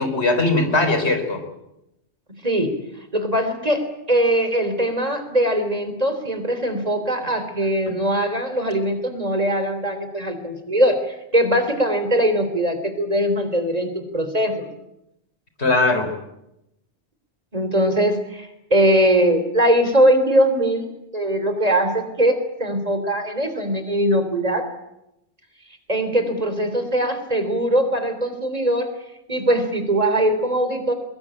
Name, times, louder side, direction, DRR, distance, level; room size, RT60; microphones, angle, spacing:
voice 1, 0.0-1.4 7.9-8.0 15.6-16.1, left 2 dB, 85° left, 7 dB, 4.2 m, -20 dB
voice 2, 3.1-14.7 17.5-20.9 21.1-24.7 25.9-28.9 29.3-30.9, right 1 dB, 35° right, 9 dB, 3.5 m, -21 dB
22.5 x 21.5 x 8.9 m, 0.86 s
omnidirectional pair, 1.1 m